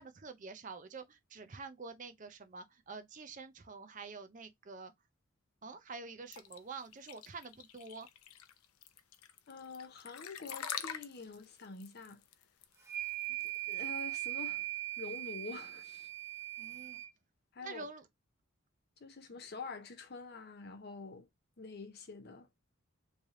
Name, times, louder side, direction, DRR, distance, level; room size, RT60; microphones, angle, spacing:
voice 1, 0.0-4.9 5.6-8.1 16.6-17.0 17.6-18.1, right 4 dB, 35° right, 0.5 m, -47 dB
sound 1, 6.3-14.0, left 9 dB, 90° left, 0.5 m, -45 dB
voice 2, 9.5-12.2 13.3-14.7 15.0-16.1 17.5-17.9 19.0-21.3 21.6-22.5, left 4 dB, 50° left, 0.6 m, -47 dB
sound 2, 12.8-17.1, right 17 dB, 10° right, 0.9 m, -40 dB
3.2 x 2.8 x 3.6 m
head